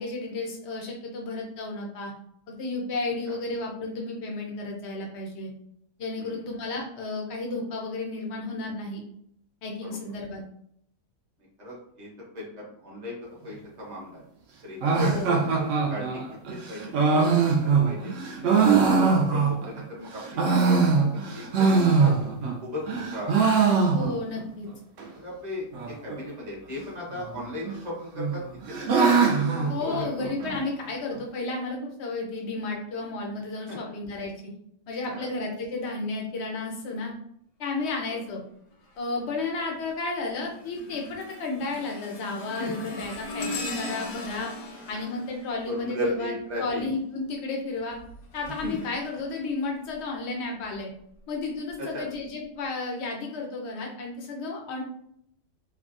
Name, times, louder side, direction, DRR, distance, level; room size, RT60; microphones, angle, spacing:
voice 1, 0.0-2.1 2.5-5.5 6.0-9.0 9.6-10.4 15.0-15.4 23.9-24.7 29.7-34.5 34.9-37.1 37.6-38.4 39.0-44.5 44.9-48.0 48.3-50.9 51.3-54.8, left 3 dB, 60° left, 0 dB, 0.7 m, -32 dB
voice 2, 11.6-12.1 12.3-13.2 13.4-14.2 14.6-14.9 15.2-16.4 16.7-18.1 18.6-22.1 22.6-23.8 25.1-28.4 28.7-30.1 33.7-33.8 35.1-35.3 38.1-38.2 42.6-42.7 45.6-46.9 48.6-48.7 51.8-52.0, left 1 dB, 35° right, -4 dB, 0.7 m, -37 dB
sound 1, 14.8-19.8 20.2-22.6 22.9-24.4 24.7-24.8 25.0-25.1 25.7-26.2 27.2-27.8 28.2-30.6, right 5 dB, 70° right, 0.7 m, -22 dB
sound 2, 38.8-39.2 39.7-46.5 47.8-50.0 50.6-50.8 51.7-51.8, left 2 dB, 80° left, 1.4 m, -40 dB
3.3 x 2.2 x 2.5 m, 0.68 s
omnidirectional pair, 1.8 m